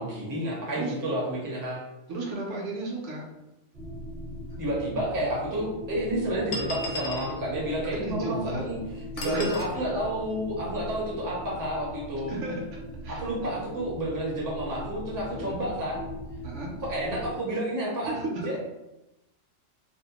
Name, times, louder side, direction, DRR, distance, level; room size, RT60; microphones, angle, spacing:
voice 1, 0.0-1.9 4.6-8.8 9.2-12.4 13.1-16.0 16.8-18.6, right 1 dB, 25° right, -4 dB, 0.5 m, -30 dB
voice 2, 2.1-3.3 7.9-8.7 9.2-9.5 10.7-10.9 12.3-13.6 15.4-15.6 16.4-16.8 18.0-18.6, right 2 dB, 70° right, -1 dB, 0.9 m, -34 dB
sound 1, 3.7-17.4, left 1 dB, 45° right, 0.8 m, -40 dB
sound 2, 4.5-4.6 5.5-5.6 6.5-7.4 9.2-9.7, left 1 dB, 65° left, 0.7 m, -35 dB
2.6 x 2.0 x 2.8 m, 0.95 s
omnidirectional pair, 1.3 m